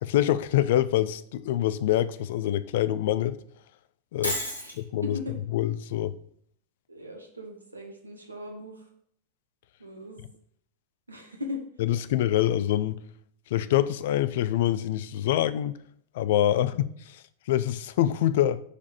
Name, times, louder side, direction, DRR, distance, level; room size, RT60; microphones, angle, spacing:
voice 1, 0.0-3.4 4.1-4.4 4.8-5.2 5.5-6.1 11.8-13.0 13.5-15.8 16.1-18.6, left 12 dB, 55° left, 0.5 m, -25 dB
Shatter, 4.2-4.8, equal, 80° left, 1.6 m, -30 dB
voice 2, 5.0-5.3 6.9-8.9 9.8-10.2 11.1-11.6 16.4-16.7, left 2 dB, 80° right, 1.5 m, -38 dB
6.7 x 4.8 x 6.9 m
figure-of-eight pair, 90°, 0 cm